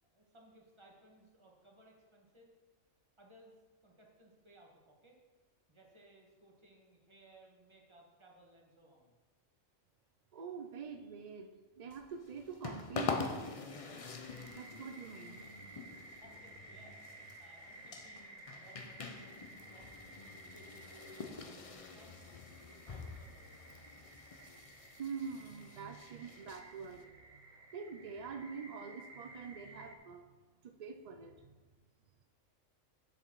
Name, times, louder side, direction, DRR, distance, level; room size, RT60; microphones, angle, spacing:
voice 1, 0.1-2.5 3.2-5.2 5.7-9.1 16.2-17.0 17.4-19.4 19.7-20.2 20.5-21.4 21.8-23.8, right 1 dB, 20° right, -1 dB, 1.6 m, -62 dB
voice 2, 10.3-13.2 14.5-15.5 25.0-27.4 27.7-30.3 30.6-31.6, right 6 dB, 65° right, 6 dB, 0.4 m, -45 dB
sound 1, 11.9-27.0, left 4 dB, 40° left, 0.5 m, -45 dB
sound 2, 14.0-30.0, right 2 dB, 40° right, 1.1 m, -55 dB
8.3 x 7.0 x 4.6 m, 1.3 s
omnidirectional pair, 1.4 m